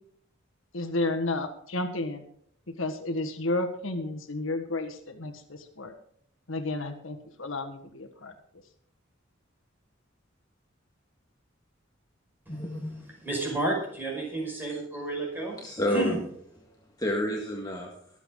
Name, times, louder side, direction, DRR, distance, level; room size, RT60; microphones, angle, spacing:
voice 1, 0.7-2.2 2.8-5.9 6.5-8.3, left 2 dB, 75° left, 7 dB, 1.6 m, -32 dB
voice 2, 12.5-13.0 15.6-16.1 16.6-16.7 17.0-17.9, left 1 dB, 20° left, -1 dB, 1.8 m, -29 dB
voice 3, 13.2-15.6 15.9-16.2, right 2 dB, 10° right, -1 dB, 5.5 m, -31 dB
23.0 x 8.2 x 3.9 m, 0.65 s
head